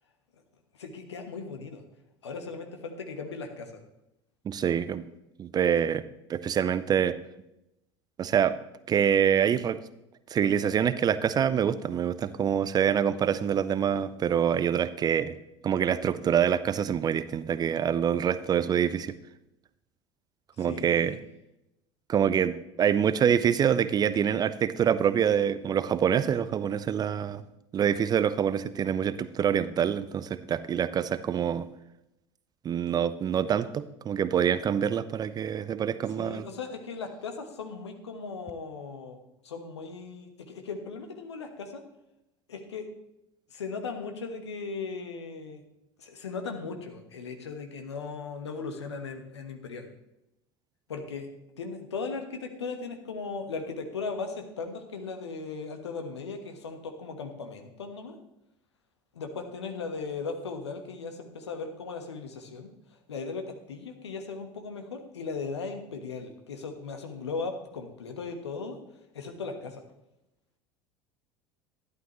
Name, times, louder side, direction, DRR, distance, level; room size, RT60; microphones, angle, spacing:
voice 1, 0.7-1.8 2.2-3.8 20.6-21.2 36.2-39.2 39.4-41.8 42.5-42.9 43.5-45.6 46.0-49.9 50.9-51.3 51.6-58.2 59.1-62.7 63.1-68.8 69.1-69.8, left 4 dB, 75° left, 6 dB, 1.3 m, -37 dB
voice 2, 4.5-5.0 5.4-6.0 6.3-7.1 8.2-8.6 8.9-9.8 10.3-15.3 15.6-19.2 20.6-21.2 22.1-27.4 27.7-31.7 32.6-36.5, right 8 dB, 30° right, 15 dB, 0.5 m, -26 dB
12.0 x 11.0 x 3.1 m, 0.86 s
figure-of-eight pair, 70°, 14 cm